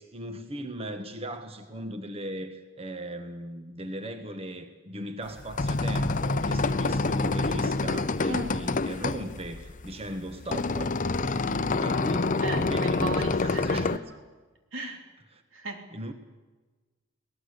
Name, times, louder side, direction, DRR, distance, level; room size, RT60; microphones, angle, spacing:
voice 1, 0.0-13.9 15.3-15.4 15.9-16.1, right 1 dB, 30° right, 1.4 m, -38 dB
sound 1, 5.3-14.0, left 3 dB, 40° left, 0.7 m, -27 dB
voice 2, 8.3-8.6 12.4-14.2 14.7-15.1 15.5-15.8, right 2 dB, 85° right, 3.2 m, -36 dB
23.0 x 18.5 x 8.2 m
head